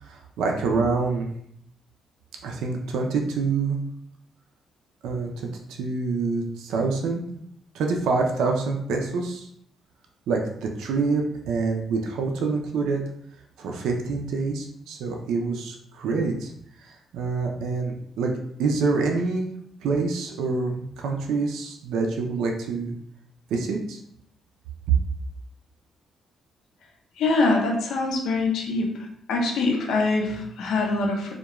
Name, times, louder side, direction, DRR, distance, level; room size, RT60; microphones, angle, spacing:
voice 1, 0.0-1.3 2.4-3.8 5.0-7.2 7.7-9.5 10.3-13.0 13.6-16.5 16.8-18.3 18.6-19.5 19.8-23.0 23.5-24.0 24.9-25.0, right 4 dB, 85° right, 2 dB, 0.4 m, -26 dB
voice 2, 27.2-28.9 29.3-31.3, left 3 dB, 75° left, 0 dB, 0.6 m, -24 dB
2.3 x 2.1 x 2.9 m, 0.68 s
cardioid pair, 90°, 0 cm